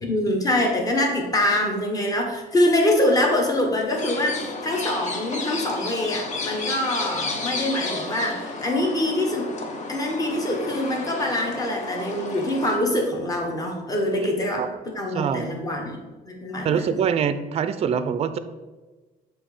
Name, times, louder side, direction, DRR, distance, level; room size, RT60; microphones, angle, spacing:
voice 1, 0.0-9.5 9.9-14.6 14.9-16.0 16.3-17.0, left 1 dB, 20° left, 0 dB, 1.2 m, -24 dB
sound 1, 3.9-12.8, left 3 dB, 45° left, 0.9 m, -32 dB
voice 2, 15.1-15.5 16.6-18.4, right 7 dB, 40° right, 12 dB, 0.4 m, -24 dB
7.3 x 2.8 x 4.9 m, 1.2 s
cardioid pair, 110°, 17 cm